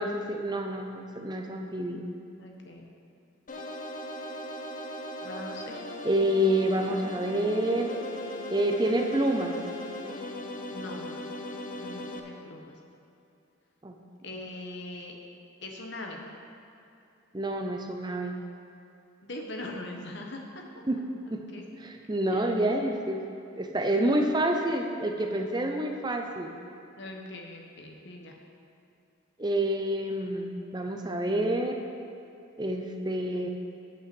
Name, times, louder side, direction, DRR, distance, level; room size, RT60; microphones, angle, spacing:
voice 1, 0.0-2.1 6.0-7.9 8.5-9.6 13.8-13.9 17.3-18.4 20.9-21.0 21.3-21.4 21.8-23.2 23.6-26.5 29.4-31.8 32.6-33.5, right 1 dB, 20° right, 3 dB, 0.6 m, -28 dB
voice 2, 2.4-2.9 5.2-5.8 10.7-11.1 11.7-12.7 14.2-15.1 15.6-16.2 19.2-20.6 21.5-21.6 22.3-22.4 27.0-28.4, left 2 dB, 55° left, 1 dB, 1.2 m, -41 dB
sound 1, 3.5-12.2, left 1 dB, 40° left, 0.7 m, -38 dB
8.4 x 5.5 x 7.7 m, 2.7 s
head